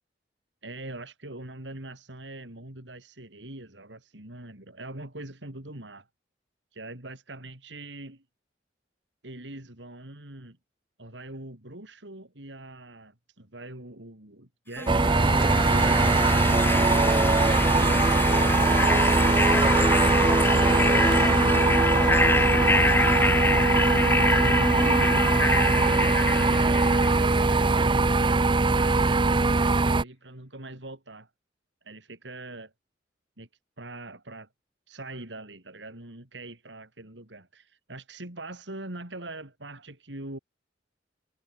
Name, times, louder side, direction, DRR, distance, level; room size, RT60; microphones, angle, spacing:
voice 1, 0.6-6.1 6.7-8.2 9.2-10.6 11.0-16.4 17.8-20.0 20.7-25.2 26.5-31.3 31.8-32.7 33.4-33.5 33.8-34.5 34.9-40.4, right 2 dB, 75° right, 4.2 m, -42 dB
sound 1, 14.8-27.7, left 2 dB, 15° left, 2.1 m, -26 dB
sound 2, 14.9-30.0, right 3 dB, 30° right, 0.7 m, -21 dB
head